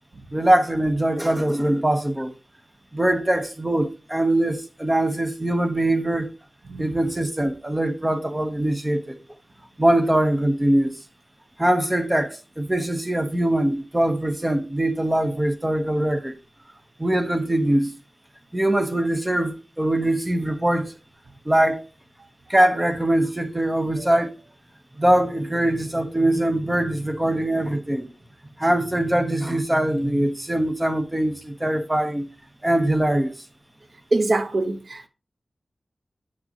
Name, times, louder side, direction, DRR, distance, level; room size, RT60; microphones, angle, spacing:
voice 1, 0.3-2.3 2.9-6.3 6.8-9.2 9.8-11.0 11.6-16.4 17.0-17.9 18.5-20.9 21.4-21.8 22.5-24.3 25.0-28.1 28.6-32.3 32.6-33.4, right 1 dB, 15° right, 1.2 m, -22 dB
voice 2, 34.1-35.1, right 2 dB, 60° right, 1.2 m, -23 dB
9.2 x 6.8 x 3.0 m
wide cardioid pair, 65°, 0 cm